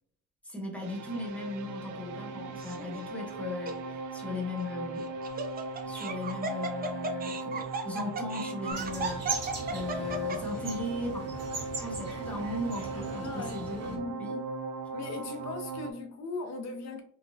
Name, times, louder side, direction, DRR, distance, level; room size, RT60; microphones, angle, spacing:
voice 1, 0.4-5.1 5.8-11.3 11.8-14.5, left 2 dB, 5° left, 1.0 m, -37 dB
sound 1, 0.8-15.9, right 3 dB, 85° right, 0.5 m, -38 dB
Laughter, 2.6-3.0 3.6-3.7 5.0-10.6, right 3 dB, 30° right, 0.5 m, -36 dB
sound 2, 8.7-14.0, right 4 dB, 55° right, 1.4 m, -39 dB
voice 2, 13.2-14.2 14.9-17.0, left 3 dB, 60° left, 0.5 m, -39 dB
3.8 x 2.1 x 2.5 m
cardioid pair, 90°, 30 cm